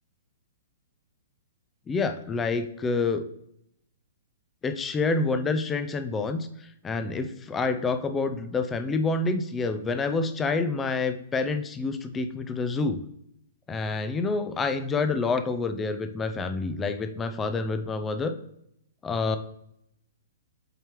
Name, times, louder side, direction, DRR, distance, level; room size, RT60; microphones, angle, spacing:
voice 1, 1.9-3.2 4.6-6.5 6.8-13.0 13.7-18.3 19.0-19.4, left 3 dB, 15° left, 9 dB, 0.4 m, -27 dB
7.8 x 4.4 x 3.0 m, 0.77 s
figure-of-eight pair, 110°, 0 cm